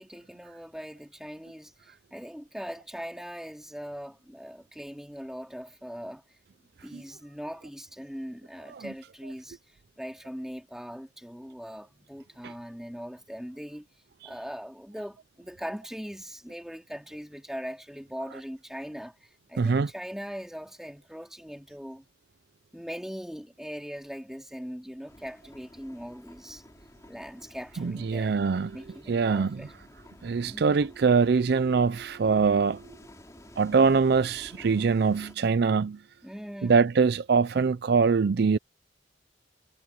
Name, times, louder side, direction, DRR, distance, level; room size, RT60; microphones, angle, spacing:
voice 1, 0.0-6.2 6.8-9.6 10.0-13.9 14.2-19.1 19.5-22.1 22.7-26.6 27.1-29.7 30.4-30.8 36.2-36.8, equal, 5° right, 2.3 m, -40 dB
voice 2, 19.6-19.9 27.8-28.8 29.1-29.6 30.2-32.8 33.6-36.0 36.6-38.6, right 5 dB, 60° right, 0.4 m, -23 dB
sound 1, 25.1-35.3, left 1 dB, 20° left, 3.1 m, -52 dB
head